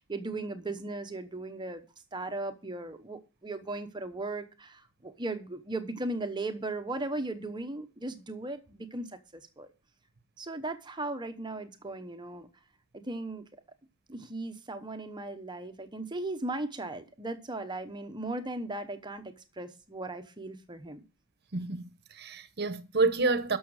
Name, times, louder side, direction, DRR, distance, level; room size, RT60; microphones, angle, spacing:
voice 1, 0.0-1.8 2.1-9.7 10.4-12.5 12.9-13.4 14.1-21.0, right 2 dB, 20° right, 0.9 m, -37 dB
voice 2, 21.5-23.6, right 3 dB, 50° right, 1.0 m, -29 dB
12.5 x 6.3 x 4.8 m
head